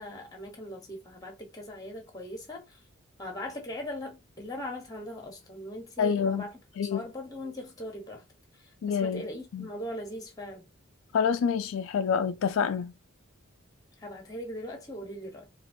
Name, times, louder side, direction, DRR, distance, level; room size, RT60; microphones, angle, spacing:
voice 1, 0.0-2.6 3.2-6.5 6.8-8.2 8.9-10.6 14.0-15.5, left 1 dB, 15° left, 1.1 m, -39 dB
voice 2, 6.0-6.5 6.8-7.0 8.8-9.2 9.5-9.7 11.1-12.9, left 6 dB, 70° left, 0.3 m, -27 dB
4.1 x 2.5 x 2.7 m
head